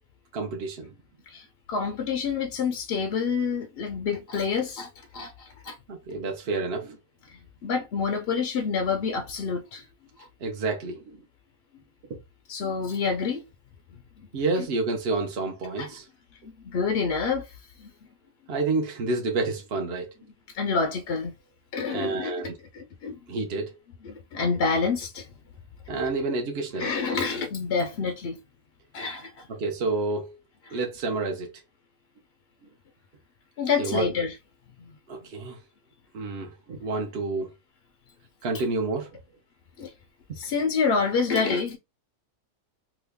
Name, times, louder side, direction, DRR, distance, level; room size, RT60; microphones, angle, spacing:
voice 1, 0.3-0.9 5.9-7.0 10.4-11.2 12.1-12.2 14.3-16.1 18.5-20.1 21.9-22.5 23.3-23.8 25.9-26.9 29.5-30.4 30.7-31.5 33.8-34.1 35.1-35.6 36.1-37.5 38.4-39.1, right 3 dB, 55° right, 0.8 m, -29 dB
voice 2, 1.3-5.8 7.6-9.9 10.2-10.3 12.5-13.4 14.2-14.3 14.6-14.7 15.8-15.9 16.6-17.9 20.5-21.3 21.7-23.2 24.0-25.3 26.8-28.4 28.9-29.5 30.7-30.8 33.6-34.4 34.8-34.9 39.8-39.9 40.4-41.8, left 5 dB, 65° left, 0.6 m, -28 dB
3.0 x 2.3 x 3.4 m
omnidirectional pair, 1.5 m